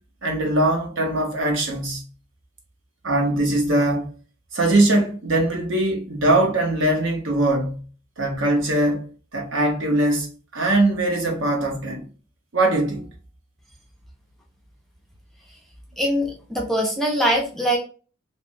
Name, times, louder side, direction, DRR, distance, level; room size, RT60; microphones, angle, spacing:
voice 1, 0.2-2.0 3.0-4.1 4.5-7.8 8.2-12.0 12.5-13.1, right 1 dB, 65° right, 0.9 m, -21 dB
voice 2, 16.0-17.8, equal, ahead, 0.5 m, -22 dB
3.3 x 2.2 x 2.5 m
head